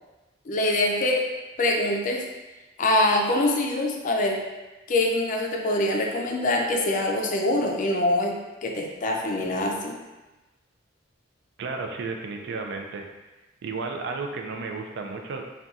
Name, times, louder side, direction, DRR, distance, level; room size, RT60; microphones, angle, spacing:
voice 1, 0.5-1.2 1.6-2.2 2.8-4.4 4.9-8.4 8.6-10.0, left 1 dB, 45° left, 0 dB, 0.4 m, -24 dB
voice 2, 11.6-13.0 13.6-15.4, right 4 dB, 60° right, 3 dB, 0.4 m, -33 dB
2.4 x 2.3 x 4.0 m, 1.1 s
head